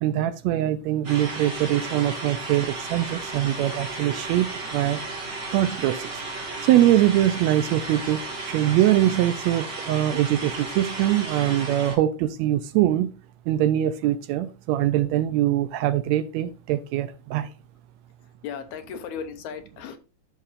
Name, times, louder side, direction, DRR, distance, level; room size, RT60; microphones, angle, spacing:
voice 1, 0.0-4.5 4.7-5.0 5.5-6.1 6.6-13.1 13.5-17.5, right 13 dB, 80° right, 1.7 m, -23 dB
sound 1, 1.0-11.9, right 3 dB, 40° right, 2.5 m, -34 dB
voice 2, 18.4-20.0, left 7 dB, 80° left, 2.2 m, -36 dB
14.0 x 4.7 x 2.5 m
omnidirectional pair, 3.3 m